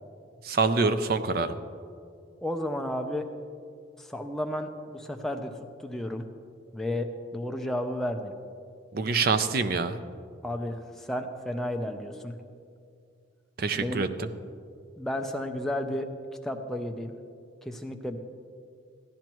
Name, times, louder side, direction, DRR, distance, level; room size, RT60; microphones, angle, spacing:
voice 1, 0.4-1.5 8.9-10.0 13.6-14.3, right 4 dB, 50° right, 10 dB, 0.5 m, -26 dB
voice 2, 2.4-3.3 4.0-5.5 5.8-6.3 6.7-8.3 10.4-12.4 13.8-14.1 15.0-16.1 16.4-17.2 17.6-18.2, left 1 dB, ahead, 3 dB, 0.5 m, -32 dB
15.0 x 10.5 x 3.0 m, 2.3 s
head